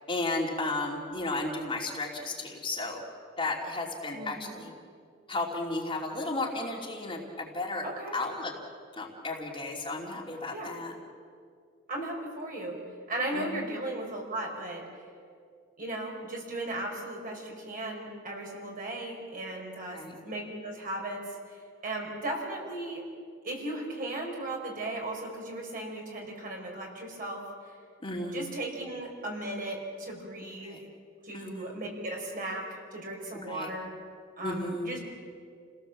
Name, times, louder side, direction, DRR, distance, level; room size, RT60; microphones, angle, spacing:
voice 1, 0.1-3.0 3.4-4.7 5.3-7.9 8.1-8.5 9.0-10.9 13.3-13.5 19.9-20.1 28.0-28.4 30.6-30.8 31.3-31.6 33.3-33.7 34.4-34.9, left 2 dB, 25° left, -1 dB, 2.9 m, -33 dB
voice 2, 4.1-4.5 7.8-8.2 10.5-10.7 11.9-12.8 13.1-14.9 15.8-23.0 23.4-27.4 28.3-30.8 31.2-33.9 34.4-35.1, right 1 dB, 45° right, 0 dB, 5.2 m, -36 dB
30.0 x 17.5 x 7.5 m, 2.2 s
head